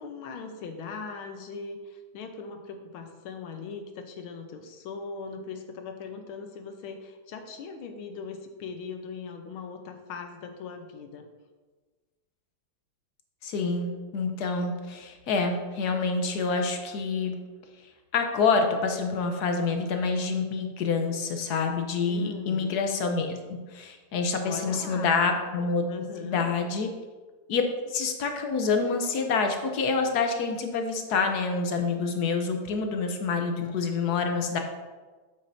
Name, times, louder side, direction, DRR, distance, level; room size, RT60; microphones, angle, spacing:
voice 1, 0.0-11.3 22.0-22.7 24.4-25.4 25.9-26.6, left 5 dB, 90° left, 5 dB, 1.7 m, -40 dB
voice 2, 13.4-17.4 18.1-25.8 26.2-26.9 27.5-34.6, left 4 dB, 60° left, 4 dB, 1.2 m, -27 dB
9.0 x 7.7 x 2.7 m, 1.3 s
omnidirectional pair, 2.2 m